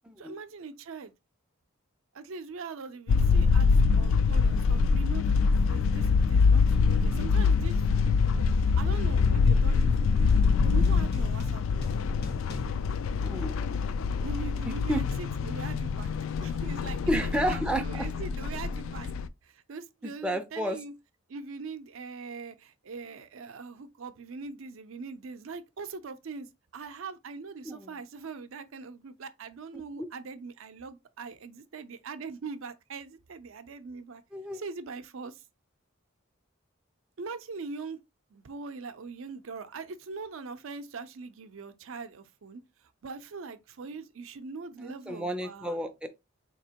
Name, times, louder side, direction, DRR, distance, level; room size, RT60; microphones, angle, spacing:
voice 1, 0.2-1.1 2.1-10.3 10.6-11.9 14.2-16.1 16.4-19.1 19.4-20.9 21.3-34.2 34.5-35.4 37.2-38.0 38.3-42.6 43.0-45.8, right 4 dB, 75° right, 0.5 m, -42 dB
sound 1, 3.1-19.3, left 5 dB, 75° left, 0.3 m, -25 dB
sound 2, 6.4-13.9, left 2 dB, 50° left, 1.0 m, -47 dB
voice 2, 13.2-13.5 14.7-15.0 17.1-18.1 20.0-20.8 27.6-27.9 30.0-30.1 34.3-34.6 44.8-46.1, equal, 5° right, 0.4 m, -31 dB
4.2 x 2.9 x 2.8 m
head